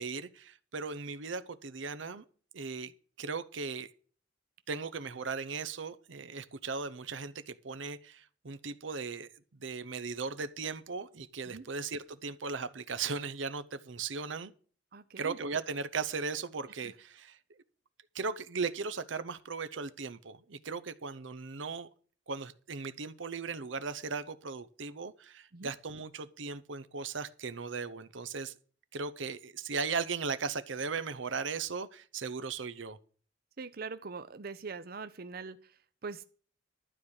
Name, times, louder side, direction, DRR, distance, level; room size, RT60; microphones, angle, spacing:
voice 1, 0.0-2.2 2.5-2.9 3.2-3.9 4.7-9.3 9.6-14.5 15.2-17.6 18.1-21.9 22.3-28.5 28.9-33.0, right 4 dB, 85° right, 0.8 m, -37 dB
voice 2, 14.9-15.4 16.8-16.9 25.5-25.7 33.6-36.2, right 4 dB, 50° right, 0.7 m, -43 dB
12.0 x 4.9 x 8.7 m
head